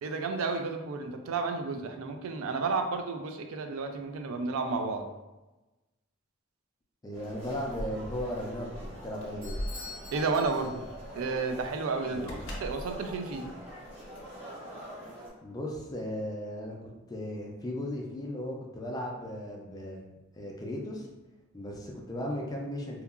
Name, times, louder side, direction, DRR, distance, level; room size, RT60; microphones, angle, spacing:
voice 1, 0.0-5.1 10.1-10.8 11.1-12.2 12.6-13.5, right 4 dB, 90° right, 6 dB, 0.3 m, -32 dB
voice 2, 7.0-9.6 12.1-12.4 15.4-20.0 20.3-21.1 21.5-23.0, left 1 dB, 20° left, -1 dB, 0.3 m, -36 dB
sound 1, 7.1-15.3, equal, 10° right, 0.8 m, -45 dB
Keys jangling, 7.4-14.2, equal, 80° left, 0.6 m, -42 dB
Bell / Doorbell, 9.4-11.1, left 4 dB, 60° right, 1.4 m, -46 dB
2.7 x 2.3 x 2.3 m, 1.1 s
head